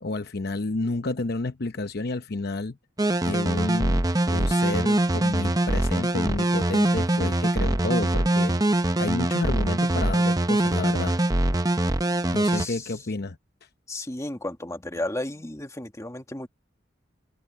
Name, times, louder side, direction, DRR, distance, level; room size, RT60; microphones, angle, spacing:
voice 1, 0.0-2.8 3.2-8.6 9.0-11.2 11.8-11.9 12.3-13.4, left 2 dB, 55° left, 0.8 m, -30 dB
sound 1, 3.0-12.7, right 1 dB, 20° right, 0.8 m, -23 dB
voice 2, 12.5-12.9 13.9-16.5, left 1 dB, 15° left, 1.8 m, -33 dB
head